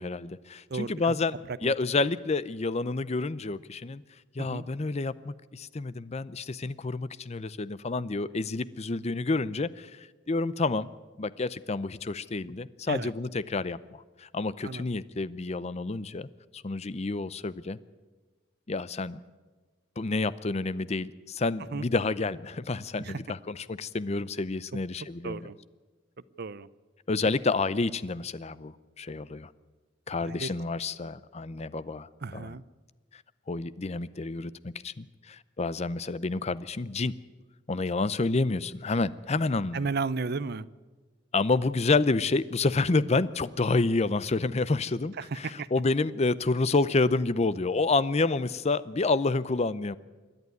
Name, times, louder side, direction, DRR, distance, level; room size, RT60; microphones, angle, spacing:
voice 1, 0.0-4.0 4.3-16.3 16.5-17.8 18.7-19.2 20.0-25.4 27.1-29.5 30.1-32.6 33.1-33.2 33.5-37.1 37.7-39.9 41.3-50.0, left 3 dB, 35° left, 0.6 m, -29 dB
voice 2, 0.7-1.2 1.5-1.7 4.4-4.7 12.9-13.1 14.6-14.8 21.6-21.8 23.0-23.2 24.7-24.8 25.2-25.6 26.4-26.7 30.2-30.5 32.2-32.6 39.7-40.7 45.2-45.7, right 4 dB, 60° right, 0.7 m, -34 dB
26.5 x 11.0 x 9.5 m
head